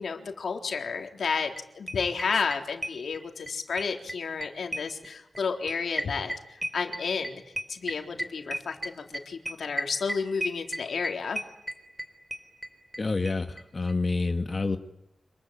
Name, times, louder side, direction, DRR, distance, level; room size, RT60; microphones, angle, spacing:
voice 1, 0.0-1.5 1.8-6.3 6.7-7.4 7.7-11.4, left 5 dB, 85° left, 4 dB, 3.8 m, -31 dB
sound 1, 1.2-1.3 1.6-1.7 1.9-3.5 3.8-13.0 13.3-13.4 13.6-13.7 13.9-14.0, right 1 dB, 15° right, 4.4 m, -34 dB
voice 2, 13.0-14.8, left 3 dB, 40° left, 6 dB, 2.0 m, -28 dB
27.5 x 21.5 x 9.1 m, 0.80 s
wide cardioid pair, 85°, 0 cm